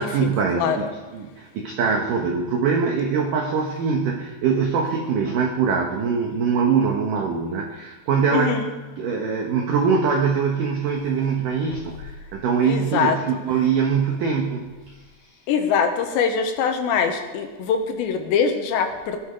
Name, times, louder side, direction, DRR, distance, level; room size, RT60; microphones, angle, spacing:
voice 1, 0.0-8.7 9.0-14.7, right 6 dB, 90° right, 1 dB, 1.8 m, -23 dB
voice 2, 8.3-8.7 12.6-13.2 15.5-19.2, left 6 dB, 75° left, 5 dB, 3.1 m, -23 dB
17.0 x 11.5 x 5.1 m, 1.2 s
omnidirectional pair, 5.6 m